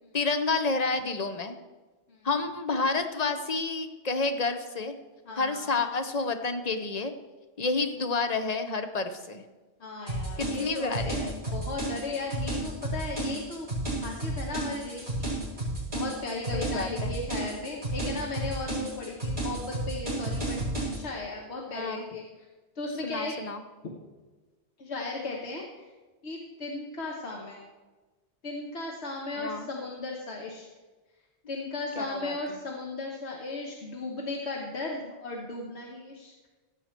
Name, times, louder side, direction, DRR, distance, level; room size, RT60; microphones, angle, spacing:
voice 1, 0.1-1.6 2.2-4.9 5.4-7.1 7.6-9.4 10.4-11.3 16.5-17.1 21.7-22.0 23.0-23.6 29.3-29.7 32.0-32.6, left 3 dB, 40° left, 7 dB, 0.9 m, -30 dB
voice 2, 5.2-5.8 9.8-13.7 14.0-15.3 15.9-22.2 22.7-23.3 24.8-25.9 26.2-27.6 28.4-30.7 31.5-36.3, left 3 dB, 85° left, -1 dB, 1.5 m, -36 dB
sound 1, 10.1-21.0, right 1 dB, 45° right, 4.4 m, -32 dB
15.5 x 7.5 x 4.5 m, 1.2 s
omnidirectional pair, 1.1 m